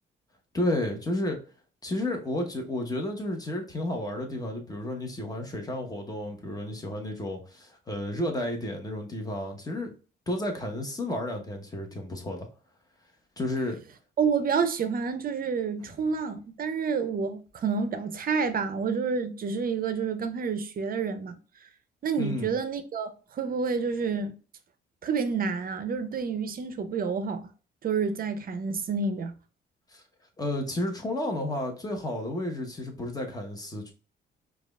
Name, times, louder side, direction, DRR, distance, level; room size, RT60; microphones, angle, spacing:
voice 1, 0.5-1.4 1.8-9.9 10.3-12.5 13.4-13.8 15.8-15.9 22.2-22.6 29.9-30.0 30.4-33.9, left 1 dB, 20° left, 1.0 m, -32 dB
voice 2, 14.2-21.4 22.0-24.3 25.0-27.5 27.8-29.4, right 5 dB, 45° right, 0.5 m, -29 dB
4.8 x 2.4 x 2.3 m
cardioid pair, 90°, 20 cm